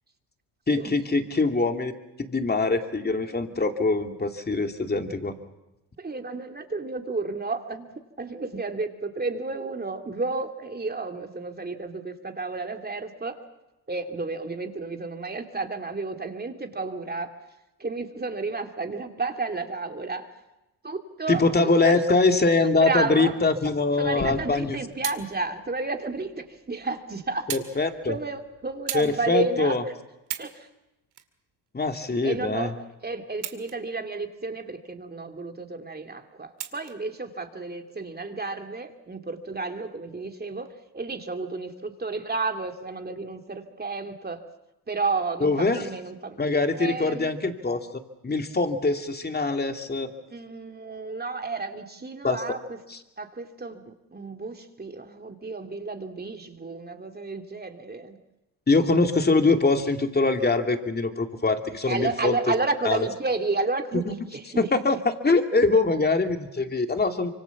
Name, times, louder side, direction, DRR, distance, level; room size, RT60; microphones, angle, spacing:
voice 1, 0.7-1.9 2.2-5.3 21.3-24.8 27.5-28.2 28.9-29.8 31.7-32.7 45.4-45.9 46.4-47.8 48.2-50.1 52.2-52.6 52.9-53.0 58.7-62.4 62.8-63.0 64.1-64.2 64.6-67.3, left 3 dB, 25° left, 6 dB, 2.6 m, -23 dB
voice 2, 6.0-13.4 13.9-17.3 17.8-20.3 20.8-22.0 22.8-23.4 24.0-27.5 28.1-29.8 30.4-30.7 32.2-32.7 33.0-44.4 44.9-46.4 46.7-47.3 50.3-52.8 53.2-58.2 61.9-64.7, right 3 dB, 25° right, 5 dB, 2.7 m, -32 dB
sound 1, 24.0-29.2, left 3 dB, 40° left, 5.6 m, -45 dB
sound 2, 24.9-25.3 26.2-26.3 27.5-27.7 28.1-28.3 28.9-29.1 29.7-29.8 30.2-30.6 31.1-32.1 33.3-34.0 34.4-34.5 36.6-37.0 37.9-38.0, right 11 dB, 70° right, 2.2 m, -36 dB
25.5 x 24.5 x 7.2 m, 0.94 s
supercardioid pair, 80°, 42 cm